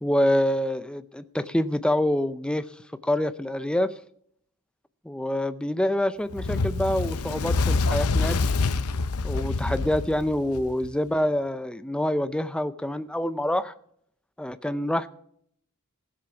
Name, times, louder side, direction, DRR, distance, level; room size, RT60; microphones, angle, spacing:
voice 1, 0.0-2.7 3.0-3.9 5.0-8.4 9.2-13.7 14.4-15.1, left 1 dB, 5° left, 12 dB, 0.5 m, -26 dB
Fire, 6.3-10.9, left 3 dB, 80° left, 0.7 m, -26 dB
16.0 x 7.6 x 5.8 m, 0.67 s
head